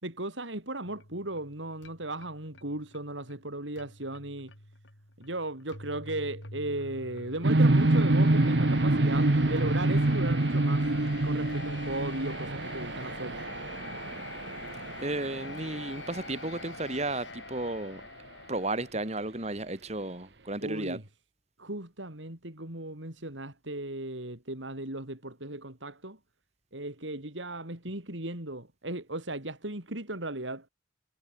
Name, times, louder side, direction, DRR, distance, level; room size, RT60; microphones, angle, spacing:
voice 1, 0.0-4.5 5.2-10.9 11.2-13.4 20.6-21.0 21.6-26.2 26.7-30.7, right 1 dB, 90° right, 5.4 m, -36 dB
sound 1, 0.8-18.9, left 3 dB, 85° left, 7.4 m, -45 dB
sound 2, 7.4-16.3, right 2 dB, 65° right, 1.2 m, -26 dB
voice 2, 15.0-18.1 18.5-21.0, right 2 dB, 35° right, 3.2 m, -33 dB
head